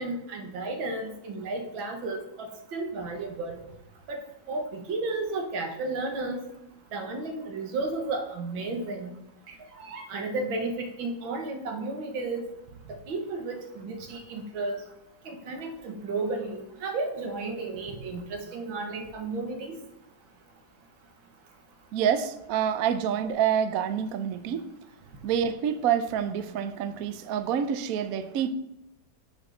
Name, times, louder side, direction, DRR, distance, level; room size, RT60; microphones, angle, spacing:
voice 1, 0.0-3.6 4.1-4.2 4.5-6.4 6.9-9.1 9.8-12.4 12.9-14.8 15.3-19.8, right 3 dB, 80° right, 2.1 m, -33 dB
voice 2, 21.9-24.7 25.2-28.5, right 8 dB, 65° right, 0.9 m, -27 dB
6.3 x 6.3 x 6.6 m
omnidirectional pair, 2.1 m